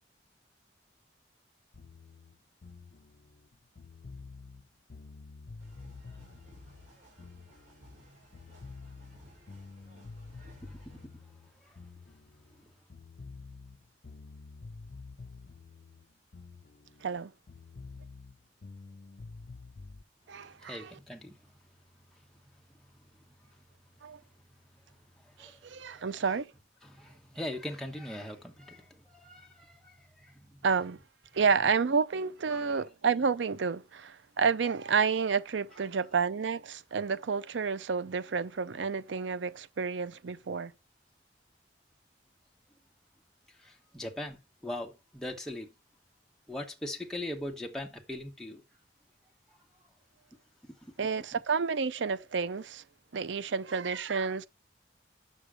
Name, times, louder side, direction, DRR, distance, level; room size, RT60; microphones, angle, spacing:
sound 1, 1.7-8.0 8.3-12.6 12.9-17.2 17.5-20.0, left 4 dB, 50° left, 0.5 m, -49 dB
sound 2, 5.6-11.1, left 1 dB, 45° right, 5.4 m, -57 dB
voice 1, 10.4-11.8 20.3-21.3 25.2-26.2 26.8-30.6 32.5-32.7 43.5-45.7 46.5-48.6 49.5-49.9 50.6-50.9, left 1 dB, 5° left, 1.2 m, -42 dB
voice 2, 20.3-20.9 24.0-24.2 25.4-26.5 30.6-31.0 31.3-40.7 51.0-52.8 53.1-54.5, right 5 dB, 80° right, 0.5 m, -30 dB
8.3 x 6.4 x 5.0 m
head